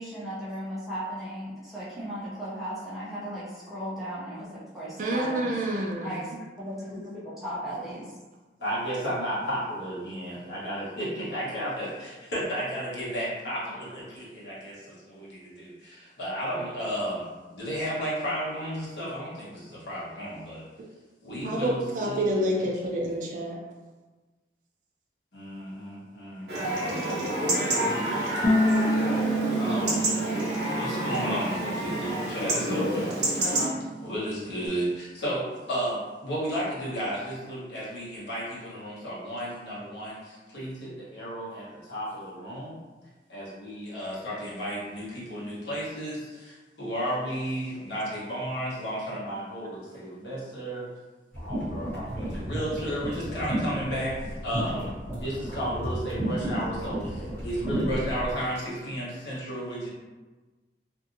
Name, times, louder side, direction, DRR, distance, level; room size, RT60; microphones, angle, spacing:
voice 1, 0.0-5.5 6.0-6.2 6.6-8.0, equal, ahead, -10 dB, 0.6 m, -36 dB
voice 2, 5.0-6.1 21.4-23.6, right 1 dB, 45° right, -2 dB, 0.4 m, -28 dB
voice 3, 8.6-20.6 21.2-22.7 23.1-23.2 25.3-28.9 29.6-30.0 30.7-33.2 34.0-42.8 43.3-50.9 51.4-59.9, equal, 75° left, -8 dB, 1.1 m, -33 dB
Chatter / Livestock farm animals working animals / Chirp tweet, 26.5-33.7, right 1 dB, 70° right, 0.8 m, -28 dB
Bass guitar, 28.4-34.7, right 1 dB, 55° left, 0.7 m, -30 dB
sound 1, 51.3-58.3, equal, 15° left, 1.2 m, -32 dB
2.6 x 2.5 x 2.6 m, 1.2 s
head